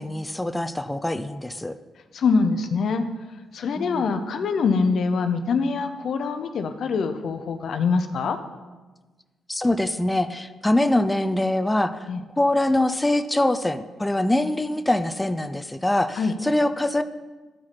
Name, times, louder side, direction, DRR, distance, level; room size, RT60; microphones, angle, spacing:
voice 1, 0.0-1.7 3.8-4.2 9.5-12.0 12.4-17.0, left 1 dB, 15° left, 10 dB, 0.5 m, -23 dB
voice 2, 2.1-3.1 3.5-8.4 12.1-12.2 16.2-16.3, left 4 dB, 65° left, 8 dB, 0.6 m, -24 dB
12.0 x 4.8 x 4.2 m, 1.3 s
supercardioid pair, 50°, 0 cm